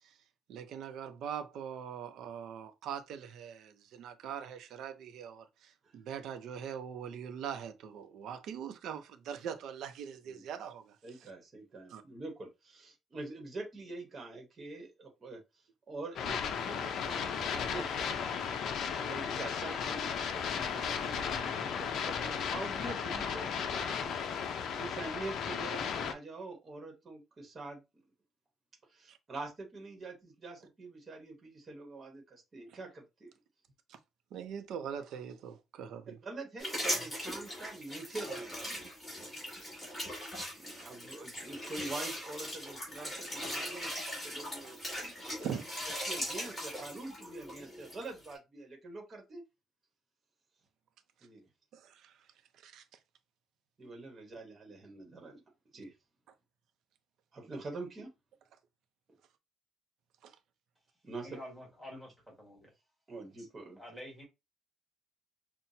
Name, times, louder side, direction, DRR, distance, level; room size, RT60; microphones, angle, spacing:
voice 1, 0.5-11.0 11.9-12.0 29.1-29.2 33.9-34.0 34.3-36.2 39.2-39.3 45.1-45.2 45.4-45.6 51.7-52.1 52.6-52.8 60.2-60.3, right 8 dB, 65° right, 0.6 m, -42 dB
voice 2, 11.0-15.4 15.9-18.1 19.1-24.2 24.7-27.8 28.9-33.3 36.2-38.9 40.6-45.6 46.0-49.4 51.2-51.4 53.8-55.4 55.7-55.9 57.3-58.1 61.0-61.4 63.1-63.8, right 2 dB, 25° right, 1.1 m, -45 dB
sound 1, 16.2-26.1, left 7 dB, 55° left, 0.5 m, -35 dB
sound 2, 36.6-48.4, equal, 10° left, 2.1 m, -40 dB
voice 3, 61.2-62.7 63.4-63.5 63.8-64.3, equal, 5° right, 1.5 m, -48 dB
5.7 x 2.2 x 2.7 m
cardioid pair, 165°, 0 cm